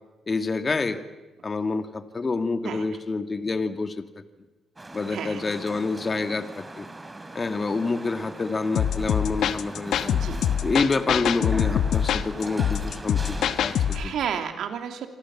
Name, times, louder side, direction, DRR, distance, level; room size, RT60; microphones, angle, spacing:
voice 1, 0.3-1.0 1.4-4.1 4.9-6.9 7.3-10.2 10.6-14.1, left 3 dB, 30° left, 8 dB, 2.1 m, -27 dB
sound 1, 4.8-14.0, right 2 dB, 15° right, 3.4 m, -40 dB
voice 2, 5.1-5.4 10.1-10.5 13.6-15.1, right 8 dB, 75° right, 5 dB, 3.2 m, -32 dB
sound 2, 8.7-14.1, left 9 dB, 75° left, 1.2 m, -24 dB
27.0 x 26.0 x 7.4 m, 1.1 s
cardioid pair, 90°, 0 cm